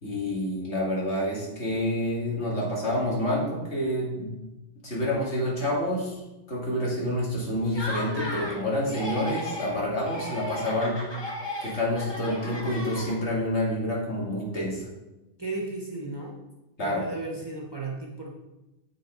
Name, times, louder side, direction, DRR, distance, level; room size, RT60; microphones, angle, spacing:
voice 1, 0.0-4.3 4.8-6.2 6.5-11.0 11.6-14.9 16.8-17.1, left 1 dB, 70° left, -4 dB, 2.6 m, -28 dB
Laughter, 7.6-8.6 8.9-9.8 10.0-13.4, left 1 dB, 20° left, 1.4 m, -35 dB
voice 2, 15.4-16.4 16.8-18.3, right 2 dB, 20° right, -3 dB, 1.4 m, -35 dB
7.4 x 6.4 x 4.6 m, 0.99 s
omnidirectional pair, 1.2 m